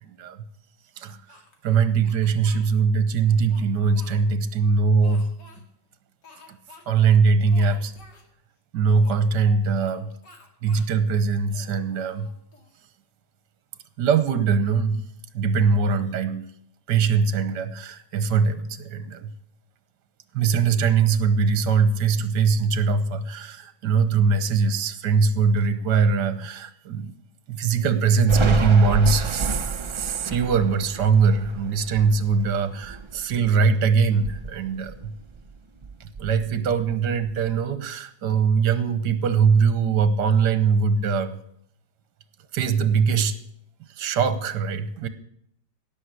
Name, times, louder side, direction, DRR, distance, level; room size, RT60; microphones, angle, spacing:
voice 1, 0.0-0.4 1.0-1.2 1.6-5.3 6.5-6.6 6.9-7.9 8.7-10.1 10.6-12.3 14.0-15.0 15.3-16.4 16.9-19.3 20.3-27.1 27.5-35.1 36.0-41.4 42.5-43.3 43.9-45.1, right 5 dB, 70° right, 12 dB, 1.6 m, -21 dB
Speech, 1.3-2.7 3.3-4.5 5.0-5.6 6.2-6.8 7.1-7.2 7.5-8.3 9.0-10.0 10.2-10.9 11.4-12.8, left 3 dB, 65° left, 2.9 m, -50 dB
Thunder, 28.3-33.7 34.1-35.5 35.8-37.5, right 4 dB, 50° right, 0.3 m, -31 dB
17.0 x 6.5 x 8.2 m, 0.71 s
omnidirectional pair, 2.0 m